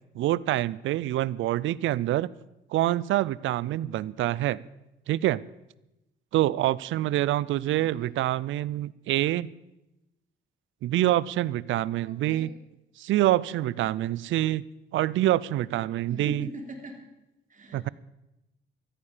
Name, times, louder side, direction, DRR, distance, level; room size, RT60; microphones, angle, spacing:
voice 1, 0.1-2.3 2.7-4.6 5.1-5.4 6.3-9.5 10.8-12.5 13.0-14.6 14.9-16.5 17.7-17.9, right 14 dB, 75° right, 21 dB, 0.5 m, -26 dB
voice 2, 7.8-8.1 12.0-12.5 16.1-16.9 17.5-17.9, right 2 dB, 40° right, 3 dB, 3.2 m, -40 dB
14.0 x 14.0 x 5.0 m, 0.93 s
cardioid pair, 90°, 20 cm